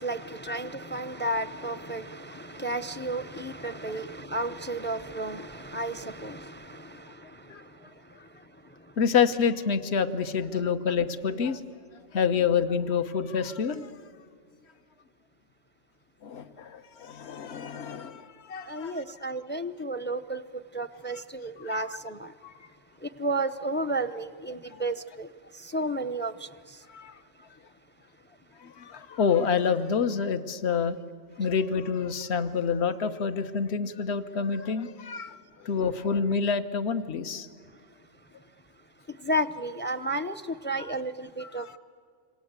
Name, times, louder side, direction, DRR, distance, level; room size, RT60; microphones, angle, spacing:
voice 1, 0.0-9.0 18.6-22.3 23.0-26.9 27.4-27.5 39.1-41.8, right 1 dB, 15° left, 0.4 m, -33 dB
voice 2, 9.0-11.6 12.1-13.9 16.2-18.9 21.6-21.8 22.4-22.5 26.9-27.2 28.6-31.0 31.4-37.5 41.6-41.8, left 6 dB, 60° left, 1.3 m, -28 dB
27.5 x 25.5 x 8.1 m
omnidirectional pair, 1.3 m